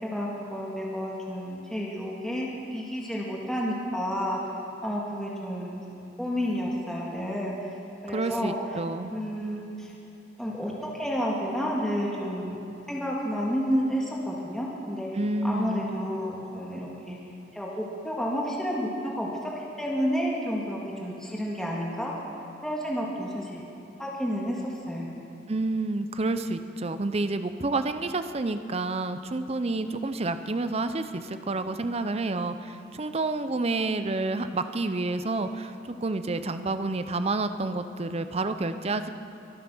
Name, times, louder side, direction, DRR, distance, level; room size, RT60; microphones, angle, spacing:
voice 1, 0.0-4.5 4.8-7.8 8.0-8.6 9.1-9.9 10.4-12.6 12.9-15.1 15.4-17.2 17.5-19.5 19.8-22.1 22.6-23.6 24.0-25.1, equal, 5° left, -4 dB, 1.9 m, -30 dB
voice 2, 8.1-9.1 15.1-15.9 25.5-39.1, right 2 dB, 35° right, 10 dB, 0.6 m, -29 dB
23.5 x 9.1 x 6.1 m, 2.8 s
head